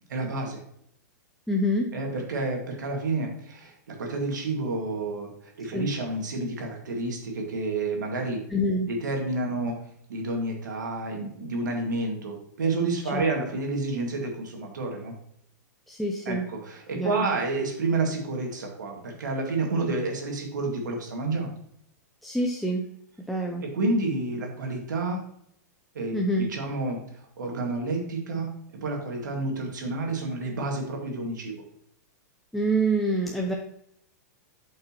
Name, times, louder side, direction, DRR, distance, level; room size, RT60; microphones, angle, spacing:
voice 1, 0.1-0.6 1.9-5.3 5.6-8.4 8.9-9.8 10.1-15.1 16.3-21.5 23.6-25.2 26.0-27.0 27.4-28.5 28.8-31.5, right 2 dB, 90° right, 1 dB, 2.0 m, -29 dB
voice 2, 1.5-2.0 5.7-5.9 8.5-8.9 13.1-13.3 15.9-16.5 16.9-17.3 22.2-22.9 23.3-23.6 26.1-26.5 32.5-33.5, right 1 dB, ahead, 1 dB, 0.6 m, -26 dB
7.9 x 5.4 x 3.0 m, 0.73 s
hypercardioid pair, 135°, 10 cm